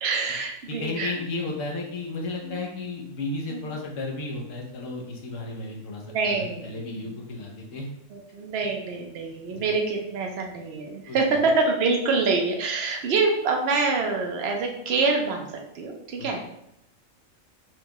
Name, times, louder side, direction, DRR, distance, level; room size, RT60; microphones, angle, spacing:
voice 1, 0.0-1.2 2.4-2.6 3.5-3.7 6.0-6.8 8.1-16.4, right 4 dB, 60° right, 2 dB, 0.8 m, -26 dB
voice 2, 0.8-7.9 9.5-9.7 11.1-11.4, left 2 dB, 80° left, -1 dB, 1.2 m, -33 dB
4.5 x 2.2 x 2.9 m, 0.79 s
omnidirectional pair, 1.3 m